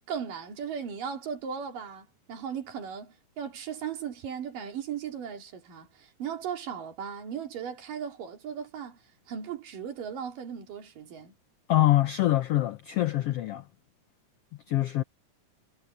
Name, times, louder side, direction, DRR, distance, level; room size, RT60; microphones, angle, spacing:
voice 1, 0.1-11.3, right 7 dB, 80° right, 4.4 m, -37 dB
voice 2, 11.7-13.6 14.7-15.0, left 15 dB, 90° left, 1.3 m, -24 dB
omnidirectional pair, 3.8 m